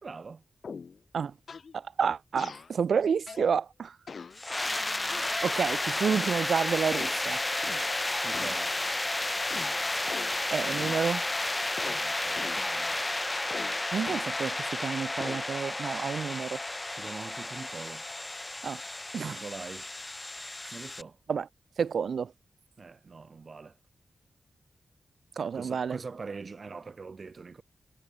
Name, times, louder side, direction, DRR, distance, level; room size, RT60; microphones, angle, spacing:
voice 1, 0.0-0.4 8.2-8.8 11.8-13.0 16.9-18.1 19.2-19.9 20.7-21.2 22.8-23.8 25.5-27.6, right 4 dB, 50° right, 1.0 m, -43 dB
sound 1, 0.6-1.0 1.5-1.7 2.4-2.7 3.3-3.5 4.1-4.4 5.1-5.6 6.1-6.4 6.9-7.2 7.6-8.1 8.3-8.7 9.5-10.4 10.8-11.2 11.8-12.1 12.4-12.7 13.5-14.4 15.2-15.5, left 5 dB, 60° left, 0.6 m, -42 dB
voice 2, 1.7-4.0 5.4-7.4 10.5-11.2 13.9-16.6 18.6-18.8 19.1-19.4 21.3-21.5 21.8-22.3 25.4-26.0, right 6 dB, 75° right, 1.2 m, -29 dB
sound 2, 4.3-21.0, left 2 dB, 20° left, 1.1 m, -32 dB
wide cardioid pair, 90°, 0 cm